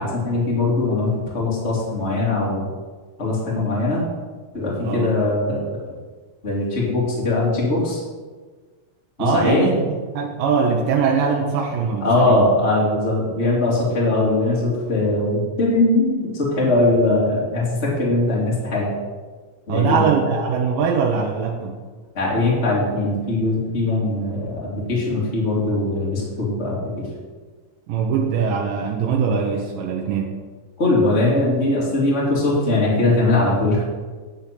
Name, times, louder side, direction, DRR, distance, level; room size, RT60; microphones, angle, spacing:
voice 1, 0.0-2.6 3.2-4.0 4.5-5.6 6.4-8.0 9.2-9.7 12.0-18.9 19.7-20.1 22.1-27.1 30.8-33.8, left 2 dB, 20° left, -5 dB, 2.6 m, -20 dB
voice 2, 9.2-12.4 19.7-21.8 27.9-30.4, right 5 dB, 80° right, 0 dB, 2.6 m, -22 dB
9.9 x 7.0 x 7.6 m, 1.4 s
omnidirectional pair, 4.1 m